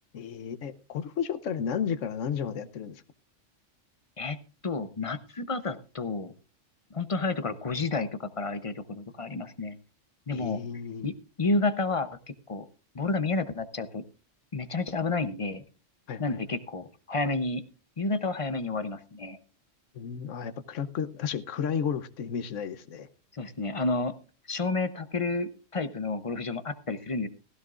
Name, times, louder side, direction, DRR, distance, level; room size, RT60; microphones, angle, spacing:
voice 1, 0.1-3.0 10.3-11.1 16.1-16.4 19.9-23.1, left 7 dB, 75° left, 13 dB, 1.2 m, -33 dB
voice 2, 4.6-6.3 6.9-9.7 10.3-10.6 11.0-12.1 12.5-12.6 12.9-14.0 14.5-15.6 16.2-17.6 18.0-19.4 23.3-24.1 24.5-27.3, left 3 dB, 30° left, 11 dB, 0.7 m, -30 dB
16.0 x 15.5 x 2.5 m, 0.35 s
omnidirectional pair, 1.3 m